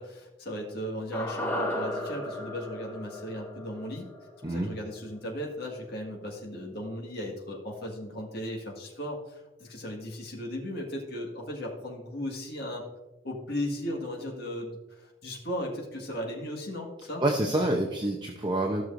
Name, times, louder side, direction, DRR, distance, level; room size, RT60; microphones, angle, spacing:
voice 1, 0.0-4.1 4.5-12.8 13.2-17.2, equal, 55° left, -1 dB, 1.8 m, -36 dB
sound 1, 1.1-5.4 5.7-5.8, left 1 dB, 10° left, 1.0 m, -36 dB
voice 2, 17.2-18.8, right 1 dB, 20° right, 0 dB, 0.7 m, -27 dB
15.0 x 6.2 x 2.6 m, 1.1 s
head